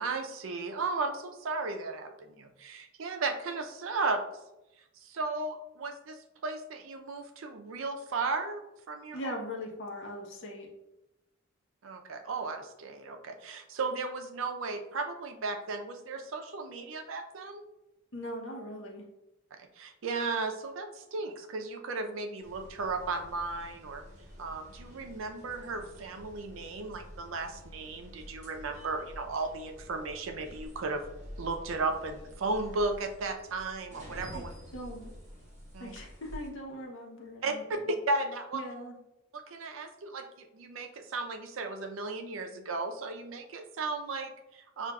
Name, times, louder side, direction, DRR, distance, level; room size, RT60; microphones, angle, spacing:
voice 1, 0.0-4.2 5.0-8.6 8.9-9.3 11.8-17.7 19.6-24.0 24.4-31.0 31.4-34.5 35.7-35.9 37.4-38.6 39.3-44.9, right 3 dB, 80° right, 5 dB, 0.5 m, -35 dB
voice 2, 9.1-10.7 18.1-19.0 34.3-34.4 34.7-35.1 35.8-37.9 38.5-39.0, equal, 65° left, 0 dB, 0.8 m, -40 dB
sound 1, 22.4-36.5, equal, 35° right, 1.0 m, -48 dB
5.9 x 2.4 x 2.2 m, 0.91 s
head